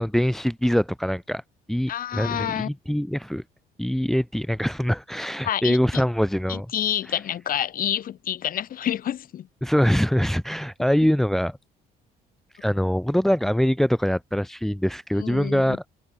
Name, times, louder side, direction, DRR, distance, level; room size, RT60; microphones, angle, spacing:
voice 1, 0.0-1.4 1.7-3.4 3.8-6.7 7.1-7.2 9.6-11.6 12.5-15.8, equal, ahead, 1.3 m, -23 dB
voice 2, 1.9-2.7 5.4-6.0 6.5-9.5 15.2-15.8, left 10 dB, 55° left, 3.7 m, -28 dB
cardioid pair, 110°, 17 cm